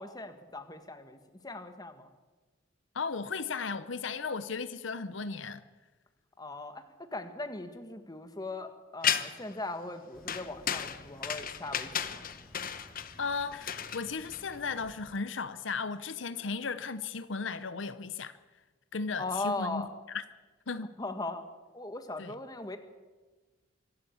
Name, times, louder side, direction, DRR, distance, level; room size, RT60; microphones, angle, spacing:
voice 1, 0.0-2.1 6.4-12.2 19.2-19.9 21.0-21.4 21.7-22.8, left 2 dB, 20° left, 1.7 m, -39 dB
voice 2, 2.9-5.6 13.2-18.3 18.9-19.9 20.1-20.2 20.7-20.9 22.2-22.4, left 4 dB, 75° left, 0.8 m, -35 dB
sound 1, 9.0-9.5 10.3-14.8, left 9 dB, 50° left, 1.1 m, -34 dB
sound 2, 10.1-15.2, left 1 dB, ahead, 2.0 m, -55 dB
24.5 x 12.5 x 8.6 m
head